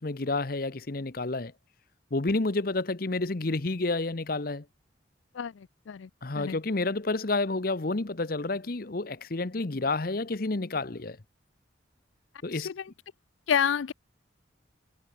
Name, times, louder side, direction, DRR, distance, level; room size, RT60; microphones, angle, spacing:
voice 1, 0.0-1.5 2.1-4.6 6.2-11.2 12.4-12.7, left 2 dB, 50° left, 0.9 m, -30 dB
voice 2, 5.3-6.1 6.4-6.6 12.5-12.9 13.5-13.9, left 8 dB, 80° left, 0.4 m, -29 dB
head